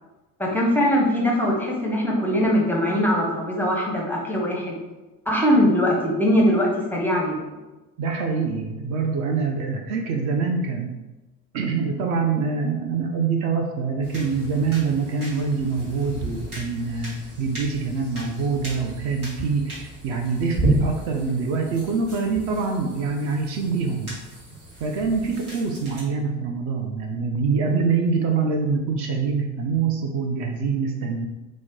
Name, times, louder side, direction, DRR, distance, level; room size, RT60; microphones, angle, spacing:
voice 1, 0.4-4.8 5.3-7.6, equal, 5° left, -3 dB, 0.5 m, -21 dB
voice 2, 8.0-10.9 11.5-19.8 20.0-24.2 24.8-31.3, right 5 dB, 45° right, 2 dB, 0.5 m, -25 dB
sound 1, 14.0-26.0, right 2 dB, 85° right, 1.2 m, -33 dB
2.9 x 2.0 x 3.5 m, 1.1 s
figure-of-eight pair, 60°, 43 cm